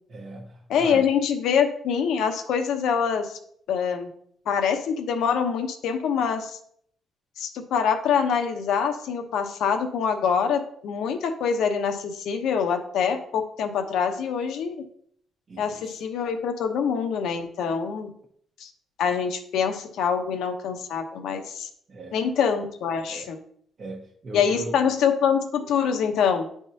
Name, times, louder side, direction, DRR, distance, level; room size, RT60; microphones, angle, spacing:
voice 1, 0.1-1.0 15.5-16.0 21.9-22.2 23.1-23.3 23.8-24.8, right 2 dB, 45° right, -2 dB, 1.1 m, -38 dB
voice 2, 0.7-3.4 3.7-4.1 4.5-6.6 7.4-14.8 15.6-18.1 18.6-18.7 19.0-21.7 22.1-23.4 24.3-26.5, left 7 dB, 80° left, 6 dB, 0.7 m, -25 dB
9.8 x 3.5 x 2.7 m, 0.64 s
cardioid pair, 90°, 0 cm